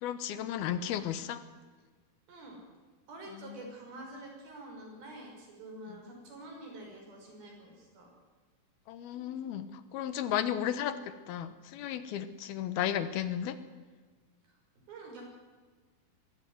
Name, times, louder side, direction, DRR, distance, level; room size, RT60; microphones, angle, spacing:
voice 1, 0.0-1.4 3.3-3.7 8.9-9.7 9.9-11.0 11.3-13.6, left 10 dB, 85° left, 12 dB, 3.0 m, -34 dB
voice 2, 2.3-2.6 3.1-8.1 14.4-14.5 14.9-15.2, right 2 dB, 70° right, 1 dB, 7.5 m, -47 dB
23.0 x 15.0 x 9.6 m, 1.4 s
omnidirectional pair, 4.4 m